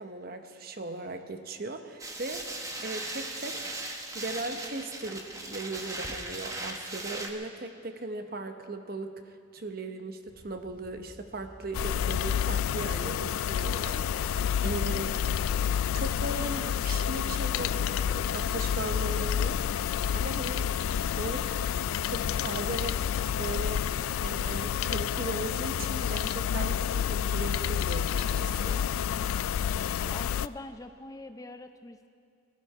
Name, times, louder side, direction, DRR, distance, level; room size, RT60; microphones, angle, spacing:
voice 1, 0.0-3.7 4.1-15.1 15.9-20.8 21.2-21.7 22.0-28.9, right 2 dB, 45° right, 7 dB, 0.9 m, -38 dB
sound 1, 2.0-7.3, right 2 dB, 15° right, 1.0 m, -38 dB
sound 2, 10.3-18.4, equal, 40° left, 1.8 m, -54 dB
sound 3, 11.7-30.5, left 8 dB, 85° left, 0.3 m, -29 dB
voice 2, 30.0-32.1, left 2 dB, 15° left, 8 dB, 0.4 m, -43 dB
22.5 x 12.0 x 4.9 m, 2.3 s
head